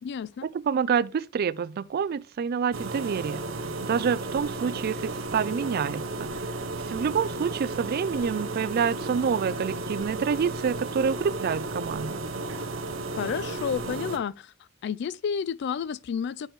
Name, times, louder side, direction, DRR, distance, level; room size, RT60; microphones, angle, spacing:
voice 1, 0.0-0.5 13.1-14.5 14.8-16.5, left 7 dB, 60° left, 0.3 m, -31 dB
voice 2, 0.5-3.4 3.8-6.5 6.8-12.2, right 6 dB, 50° right, 0.3 m, -27 dB
sound 1, 2.7-14.2, right 2 dB, 85° right, 0.9 m, -34 dB
6.5 x 6.2 x 3.1 m
head